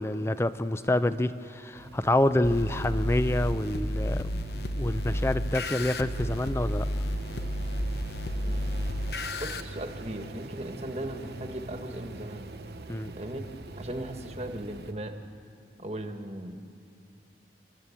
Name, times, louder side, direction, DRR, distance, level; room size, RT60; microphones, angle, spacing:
voice 1, 0.0-4.4 4.7-6.9 12.9-13.1, left 1 dB, 15° left, 12 dB, 0.5 m, -27 dB
sound 1, 1.8-14.9, right 2 dB, 65° right, 0.8 m, -44 dB
sound 2, 2.4-9.6, equal, 60° left, 0.9 m, -31 dB
voice 2, 9.4-12.5 13.2-13.5 13.8-15.2 15.8-16.6, right 1 dB, 35° right, 6 dB, 1.4 m, -37 dB
28.0 x 12.0 x 8.5 m, 2.4 s
head